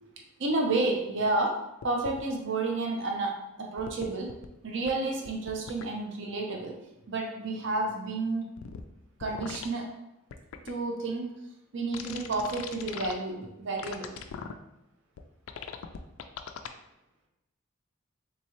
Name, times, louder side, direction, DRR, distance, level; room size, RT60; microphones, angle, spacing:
voice 1, 0.4-1.6 1.8-4.3 4.6-6.8 7.1-8.5 9.2-9.9 10.6-11.3 11.7-14.2, right 2 dB, 60° right, 0 dB, 0.6 m, -30 dB
sound 1, 1.8-2.2 3.8-4.5 4.9-5.0 5.2-5.8 8.6-8.8 9.2-9.7 10.3-10.7 11.9-13.1 13.8-14.5 15.2-15.3 15.5-16.7, left 7 dB, 80° left, 0.3 m, -40 dB
3.5 x 3.0 x 2.9 m, 0.88 s
head